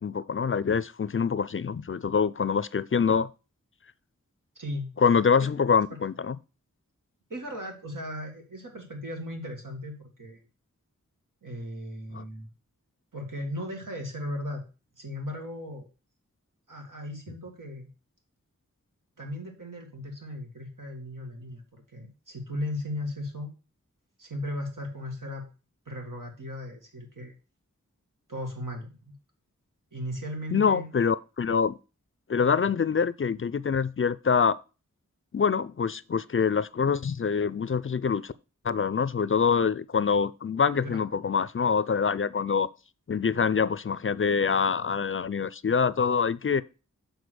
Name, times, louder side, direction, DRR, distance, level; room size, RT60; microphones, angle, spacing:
voice 1, 0.0-3.3 5.0-6.4 12.1-12.2 30.5-31.8 32.3-34.6 35.3-38.3 38.6-42.7 43.1-46.6, left 6 dB, 45° left, 0.4 m, -25 dB
voice 2, 4.6-4.9 5.4-5.5 6.0-6.1 7.3-10.4 11.4-12.5 13.1-14.6 15.0-15.9 16.7-17.9 19.2-21.6 21.9-23.5 24.2-25.4 25.9-27.3 28.3-29.1 29.9-30.9 32.6-32.7 40.8-41.0, left 1 dB, 90° right, 2.1 m, -36 dB
6.9 x 3.9 x 6.4 m
wide cardioid pair, 45°, 31 cm